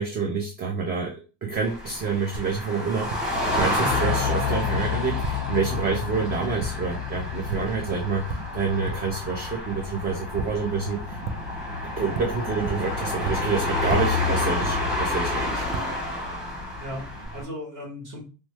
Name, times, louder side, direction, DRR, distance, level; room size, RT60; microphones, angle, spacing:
voice 1, 0.0-11.2 11.8-15.7, right 5 dB, 25° right, 1 dB, 0.4 m, -28 dB
sound 1, 1.5-17.4, left 2 dB, ahead, 0.8 m, -29 dB
Tap, 2.3-17.3, right 4 dB, 80° right, 0.5 m, -38 dB
sound 2, 3.9-12.8, left 19 dB, 60° left, 0.5 m, -34 dB
voice 2, 16.8-18.2, equal, 50° right, -1 dB, 1.4 m, -36 dB
2.9 x 2.2 x 3.1 m, 0.34 s
cardioid pair, 150°, 41 cm